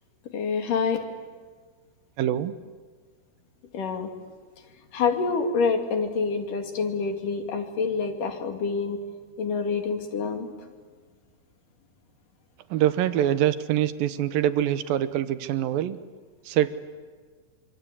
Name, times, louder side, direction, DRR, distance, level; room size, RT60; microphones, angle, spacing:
voice 1, 0.3-1.0 3.7-4.1 4.9-9.0 9.4-10.5, left 5 dB, 55° left, 4 dB, 3.8 m, -27 dB
voice 2, 2.2-2.5 12.7-16.0 16.5-16.7, right 11 dB, 70° right, 12 dB, 2.5 m, -24 dB
26.5 x 26.0 x 8.6 m, 1.5 s
omnidirectional pair, 4.7 m